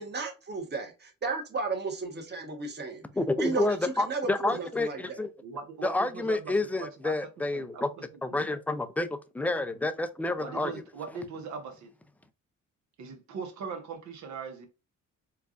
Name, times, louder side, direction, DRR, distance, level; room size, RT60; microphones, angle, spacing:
voice 1, 0.0-3.0 3.4-5.2, right 3 dB, 35° right, 1.3 m, -34 dB
voice 2, 3.1-5.3 5.8-7.9 8.2-9.1 9.3-10.7, left 2 dB, 5° left, 0.4 m, -29 dB
voice 3, 5.4-8.6 10.4-11.9 13.0-14.7, right 5 dB, 70° right, 1.1 m, -40 dB
4.5 x 2.4 x 2.5 m
cardioid pair, 90°, 30 cm